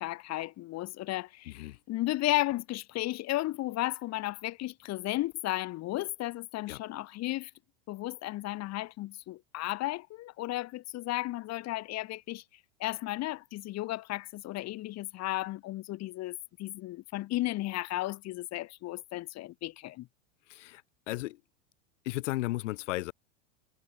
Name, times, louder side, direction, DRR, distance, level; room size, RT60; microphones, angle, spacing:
voice 1, 0.0-7.5 7.9-12.4 12.8-20.1, left 17 dB, 45° left, 6.7 m, -34 dB
voice 2, 1.5-1.8 6.7-6.8 20.5-20.8 21.1-21.4 22.0-23.1, left 18 dB, 70° left, 5.9 m, -34 dB
supercardioid pair, 120°, 37 cm